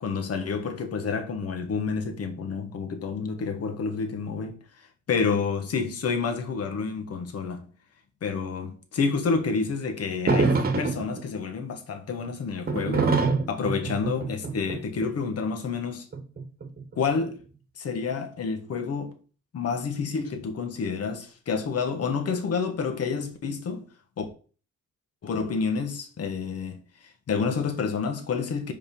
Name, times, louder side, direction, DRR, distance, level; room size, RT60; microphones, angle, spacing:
voice 1, 0.0-4.6 5.1-7.7 8.2-13.1 13.5-16.0 17.0-17.4 17.8-19.1 19.5-23.9 24.2-24.3 25.2-26.8 27.3-28.7, left 5 dB, 55° left, 1.5 m, -29 dB
sound 1, 10.3-11.2 12.7-15.1 16.1-17.1, right 4 dB, 30° right, 1.3 m, -25 dB
5.4 x 5.2 x 5.4 m
cardioid pair, 90°, 30 cm